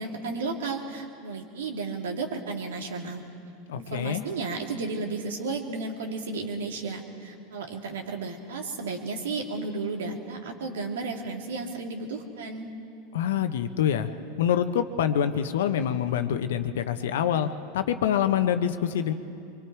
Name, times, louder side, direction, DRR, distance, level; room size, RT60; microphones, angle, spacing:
voice 1, 0.0-3.2 3.7-12.7, right 3 dB, 75° right, 2 dB, 2.3 m, -33 dB
voice 2, 3.7-4.2 13.1-14.1 14.4-17.5 17.7-19.1, left 9 dB, 75° left, 9 dB, 1.0 m, -25 dB
24.0 x 23.5 x 4.7 m, 2.5 s
hypercardioid pair, 90°, 0 cm